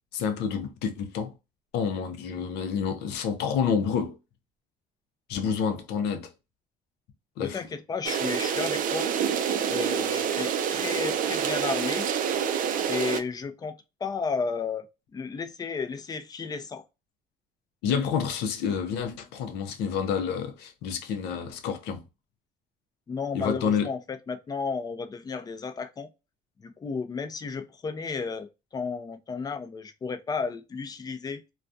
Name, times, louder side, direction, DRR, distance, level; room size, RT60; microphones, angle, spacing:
voice 1, 0.1-1.3 1.7-4.2 5.3-6.3 7.4-7.6 17.8-22.0 23.3-23.9, left 7 dB, 90° left, 0.6 m, -28 dB
voice 2, 7.4-9.1 9.7-12.1 12.9-13.7 14.0-14.9 15.1-16.8 23.1-26.1 26.6-31.4, left 5 dB, 25° left, 0.4 m, -33 dB
sound 1, 8.0-13.2, right 8 dB, 55° right, 0.4 m, -27 dB
2.3 x 2.2 x 2.5 m
cardioid pair, 110°, 17 cm